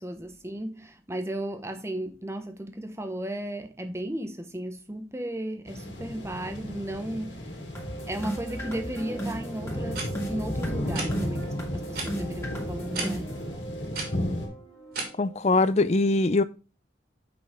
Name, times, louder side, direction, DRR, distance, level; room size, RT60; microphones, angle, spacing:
voice 1, 0.0-7.5 8.1-13.3, right 1 dB, 15° right, 0.8 m, -35 dB
sound 1, 5.7-14.5, left 1 dB, 65° left, 2.2 m, -34 dB
sound 2, 7.7-15.7, right 1 dB, 15° left, 1.9 m, -37 dB
sound 3, 9.9-10.1 10.9-11.1 11.9-12.1 12.9-13.1 13.9-14.1 14.9-15.0, right 4 dB, 50° right, 2.3 m, -32 dB
voice 2, 15.2-16.4, left 3 dB, 35° left, 0.4 m, -22 dB
7.9 x 5.5 x 3.5 m
head